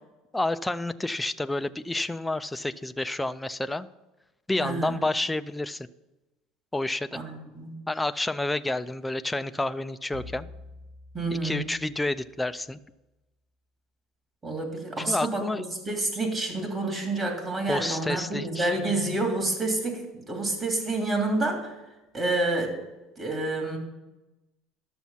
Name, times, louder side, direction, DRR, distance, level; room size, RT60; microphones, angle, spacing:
voice 1, 0.3-3.9 4.5-5.9 6.7-7.2 7.9-10.5 11.3-12.8 15.1-15.6 17.7-18.7, left 2 dB, 10° left, 11 dB, 0.4 m, -29 dB
voice 2, 4.6-5.0 7.1-7.8 11.1-11.7 14.4-21.8 22.1-22.7 23.2-23.8, right 2 dB, 30° right, 2 dB, 3.0 m, -28 dB
sound 1, 10.1-12.6, left 2 dB, 55° right, 2.5 m, -47 dB
12.0 x 7.2 x 5.7 m, 1.1 s
supercardioid pair, 120°, 0 cm